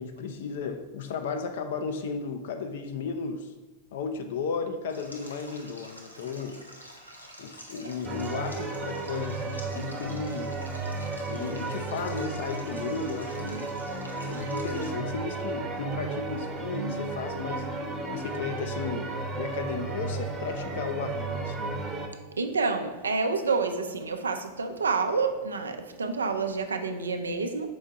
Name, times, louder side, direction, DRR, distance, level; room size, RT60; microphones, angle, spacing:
voice 1, 0.0-3.5 3.9-6.6 7.4-10.6 11.3-13.8 14.3-17.7 18.1-21.8, left 5 dB, 55° left, 7 dB, 0.6 m, -34 dB
Stream, 4.9-14.9, equal, 90° left, 0.8 m, -48 dB
sound 1, 8.0-22.1, right 3 dB, 20° right, 0.9 m, -34 dB
voice 2, 22.4-27.7, right 4 dB, 75° right, 7 dB, 0.5 m, -28 dB
6.1 x 4.5 x 3.6 m, 1.2 s
figure-of-eight pair, 90°, 0 cm